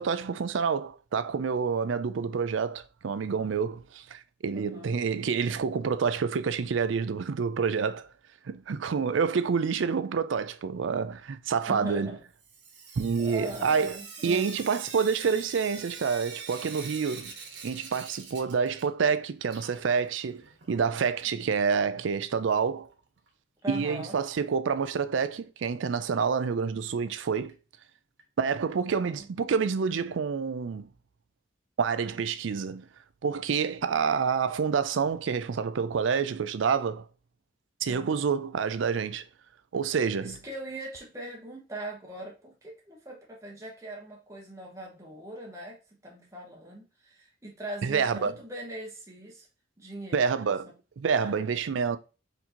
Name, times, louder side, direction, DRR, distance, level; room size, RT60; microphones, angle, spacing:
voice 1, 0.0-8.1 8.5-12.1 13.0-17.3 17.6-22.9 23.7-27.5 28.4-30.9 31.8-32.9 33.2-37.0 37.8-39.2 39.7-40.4 47.8-48.3 50.1-50.7 51.0-52.0, right 6 dB, 80° right, 0.4 m, -28 dB
voice 2, 4.5-5.0 11.7-12.2 13.2-14.5 23.6-24.2 28.9-29.3 37.9-38.2 40.2-45.8 46.0-49.5 49.8-50.6 51.2-51.5, right 1 dB, 15° right, 1.0 m, -41 dB
Sink (filling or washing) / Drip, 12.4-19.1 19.4-21.3 22.5-22.6 22.9-23.0 23.3-23.4 26.3-26.4 26.9-27.0 27.5-27.6 28.2-28.3 28.9-29.0 29.9-30.0, right 5 dB, 65° right, 1.2 m, -45 dB
4.3 x 4.0 x 2.8 m
head